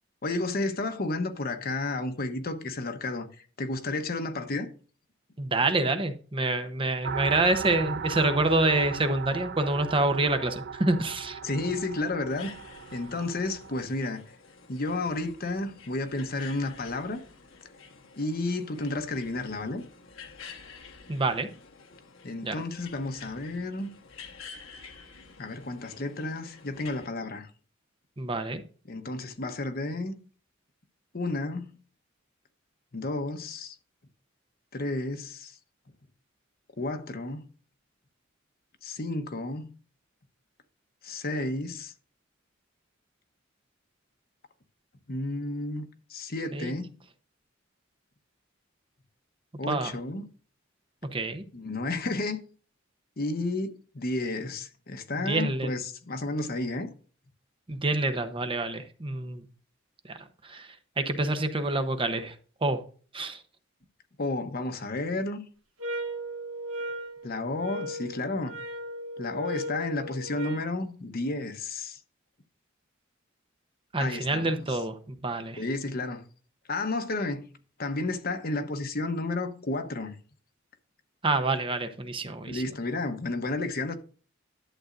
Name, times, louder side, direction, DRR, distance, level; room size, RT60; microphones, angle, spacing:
voice 1, 0.2-4.7 11.4-12.5 12.9-14.3 14.7-17.2 18.2-19.8 22.2-23.9 25.4-27.5 28.9-30.1 31.1-31.7 32.9-33.8 34.7-35.5 36.8-37.5 38.8-39.7 41.0-41.9 45.1-46.9 49.6-50.2 51.5-52.4 53.2-56.9 64.2-65.4 67.2-68.6 69.2-72.0 74.0-74.5 75.6-76.2 76.7-77.5 77.8-80.1 82.5-83.9, left 2 dB, 50° left, 1.0 m, -32 dB
voice 2, 5.4-11.4 21.1-21.5 22.4-22.6 28.2-28.6 46.5-46.7 49.7-50.0 51.1-51.4 55.2-55.7 57.7-59.4 60.0-62.3 62.6-62.8 63.1-63.4 73.9-75.6 81.2-82.6, right 2 dB, 25° right, 0.8 m, -27 dB
sound 1, 7.0-13.8, right 5 dB, 55° right, 0.4 m, -37 dB
sound 2, 12.3-27.1, left 5 dB, 75° left, 1.3 m, -50 dB
sound 3, 65.8-70.7, equal, 85° right, 1.8 m, -36 dB
11.5 x 7.8 x 2.6 m
head